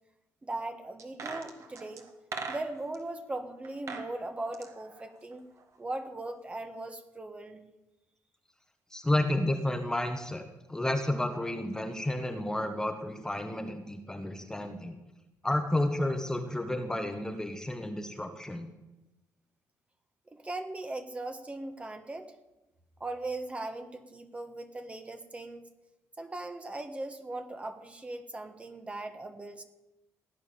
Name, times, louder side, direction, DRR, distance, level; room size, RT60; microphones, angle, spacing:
voice 1, 0.4-2.1 2.5-5.4 5.8-7.6 20.3-22.3 23.0-25.7 26.2-29.6, right 2 dB, 20° right, 7 dB, 1.4 m, -39 dB
sound 1, 1.0-3.0 3.6-4.1 4.4-5.8 6.0-6.1, right 4 dB, 50° right, 2.0 m, -41 dB
voice 2, 8.9-10.4 10.7-15.0 15.4-18.7, left 1 dB, 10° left, 6 dB, 1.2 m, -31 dB
16.5 x 9.5 x 7.0 m, 1.0 s
cardioid pair, 120°, 7 cm